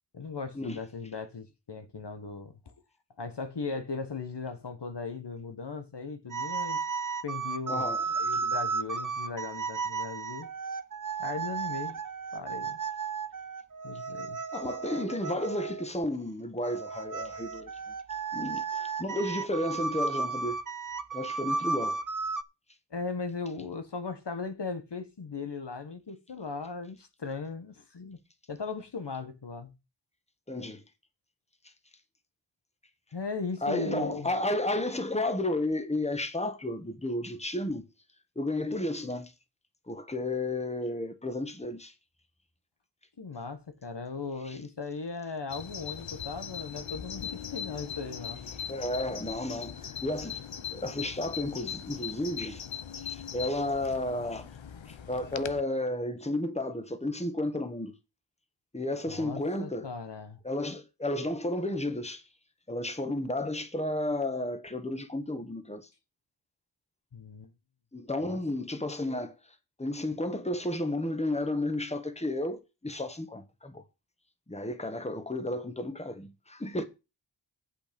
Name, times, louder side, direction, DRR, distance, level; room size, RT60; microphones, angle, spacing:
voice 1, 0.1-2.7 3.2-6.8 7.2-10.5 11.2-12.0 12.3-12.8 13.8-14.4 22.9-28.2 28.5-29.7 33.1-34.3 43.2-48.4 59.1-60.4 67.1-67.5 68.2-68.4, left 4 dB, 60° left, 1.5 m, -38 dB
sound 1, 6.3-15.9 16.6-22.4, right 5 dB, 45° right, 0.9 m, -34 dB
voice 2, 7.7-8.0 14.5-17.7 18.3-20.6 21.1-22.0 30.5-30.8 33.6-37.9 38.3-39.3 39.9-41.9 44.5-44.6 48.7-50.4 50.7-52.6 53.0-54.5 54.9-57.9 58.7-59.9 60.4-62.2 62.7-65.9 67.9-69.4 69.8-73.8 74.5-76.8, left 1 dB, 15° left, 1.5 m, -32 dB
Bird vocalization bird call bird song, 45.5-55.6, left 8 dB, 75° left, 0.9 m, -40 dB
8.4 x 8.3 x 5.3 m
wide cardioid pair, 75°, 46 cm